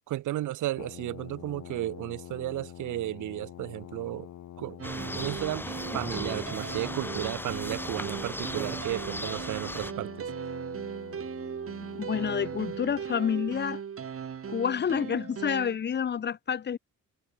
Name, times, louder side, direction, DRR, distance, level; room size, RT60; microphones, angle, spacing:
voice 1, 0.1-4.3 4.6-4.8 5.1-5.7 5.9-10.3, right 15 dB, 80° right, 1.2 m, -33 dB
Brass instrument, 0.8-13.0, left 11 dB, 65° left, 2.5 m, -46 dB
sound 1, 4.8-9.9, left 1 dB, 5° left, 1.0 m, -37 dB
sound 2, 4.8-15.8, right 7 dB, 50° right, 3.0 m, -38 dB
voice 2, 12.0-13.8 14.5-16.8, left 7 dB, 35° left, 0.7 m, -29 dB
cardioid pair, 90°, 30 cm